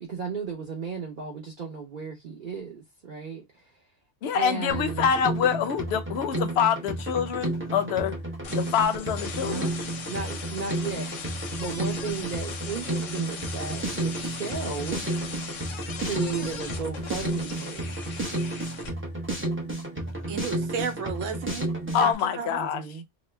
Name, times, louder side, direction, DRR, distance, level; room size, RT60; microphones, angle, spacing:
voice 1, 0.0-3.6 4.3-5.1 9.4-9.7 10.1-15.1 16.0-18.2 22.6-23.0, right 5 dB, 50° right, 0.8 m, -35 dB
voice 2, 4.2-8.2 8.6-9.7 21.9-22.8, left 7 dB, 65° left, 0.8 m, -25 dB
Drum kit, 4.7-22.1, right 1 dB, 15° right, 0.4 m, -32 dB
sound 1, 8.4-18.9, left 5 dB, 85° left, 1.1 m, -39 dB
voice 3, 20.3-21.7 22.0-22.8, right 6 dB, 85° right, 1.1 m, -33 dB
2.8 x 2.1 x 3.1 m
omnidirectional pair, 1.3 m